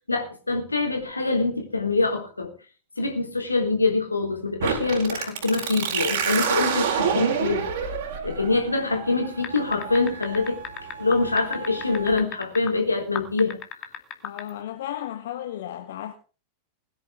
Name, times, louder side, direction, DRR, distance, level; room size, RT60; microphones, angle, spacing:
voice 1, 0.1-2.5 3.0-7.6 8.2-10.6 11.0-13.6, left 3 dB, 80° left, 3.7 m, -24 dB
sound 1, 4.6-12.1, right 7 dB, 55° right, 4.3 m, -29 dB
sound 2, 9.4-12.7 13.1-14.5, left 9 dB, 30° left, 2.5 m, -34 dB
voice 2, 14.2-16.1, left 11 dB, 55° left, 1.6 m, -34 dB
21.0 x 10.5 x 3.7 m
figure-of-eight pair, 90°, 0 cm